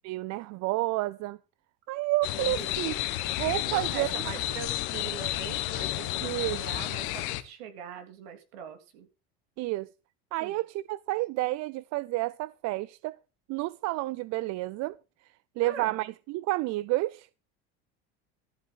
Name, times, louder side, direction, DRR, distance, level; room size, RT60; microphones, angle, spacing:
voice 1, 0.0-1.4 1.9-2.9 3.4-4.3 6.2-6.6 9.6-9.9 10.3-13.2 13.5-15.0 15.2-17.3, right 19 dB, 55° right, 0.5 m, -30 dB
sound 1, 2.2-7.4, left 16 dB, 70° left, 1.4 m, -31 dB
voice 2, 2.5-2.8 3.6-9.1 10.4-10.6 15.6-16.0, right 7 dB, 75° right, 3.3 m, -42 dB
13.5 x 5.5 x 7.6 m
supercardioid pair, 90°, 32 cm